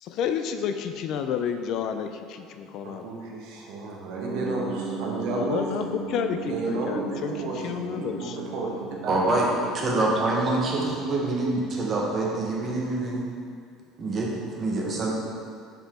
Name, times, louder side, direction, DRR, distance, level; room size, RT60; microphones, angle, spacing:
voice 1, 0.0-3.1 5.3-8.4, left 8 dB, 55° left, 7 dB, 0.3 m, -30 dB
voice 2, 2.8-5.7 6.5-9.2 9.5-9.6, right 3 dB, 70° right, -1 dB, 1.0 m, -32 dB
sound 1, 4.2-13.2, right 4 dB, 90° right, 1.0 m, -38 dB
voice 3, 9.1-9.5 9.7-13.3 14.0-15.1, right 2 dB, 30° right, -2 dB, 1.0 m, -26 dB
5.3 x 4.9 x 3.6 m, 2.3 s
cardioid pair, 135°, 0 cm